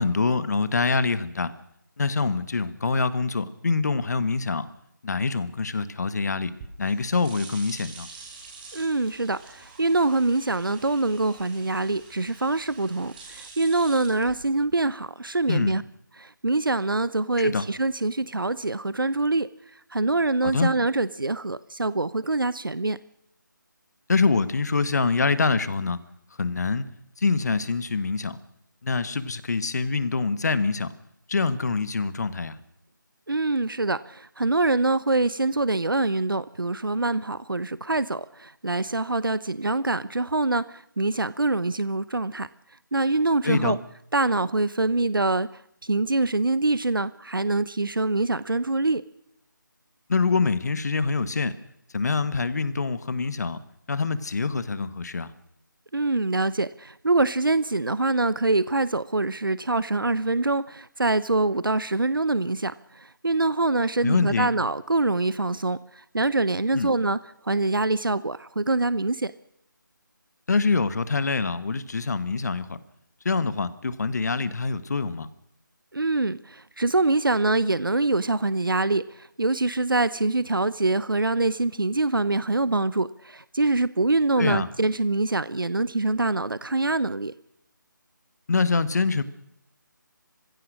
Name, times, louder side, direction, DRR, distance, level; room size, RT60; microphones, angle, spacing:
voice 1, 0.0-1.5 2.0-4.7 5.0-6.5 6.8-8.1 15.5-15.8 17.4-17.6 20.4-20.7 24.1-26.0 26.4-26.9 27.2-28.4 28.8-30.9 31.3-32.6 43.4-43.8 50.1-51.5 51.9-53.6 53.9-55.3 64.0-64.5 66.7-66.9 70.5-72.8 73.2-75.3 84.4-84.7 88.5-89.2, left 4 dB, 55° left, 14 dB, 1.6 m, -25 dB
sound 1, 6.4-14.9, right 4 dB, 25° right, 4.5 m, -46 dB
voice 2, 8.7-15.8 16.2-19.5 19.9-23.0 33.3-42.5 42.9-43.8 44.1-45.5 45.8-49.0 55.9-67.2 67.4-69.3 75.9-87.3, right 2 dB, 90° right, 17 dB, 0.8 m, -24 dB
26.5 x 16.0 x 6.4 m, 0.77 s
figure-of-eight pair, 160°, 11 cm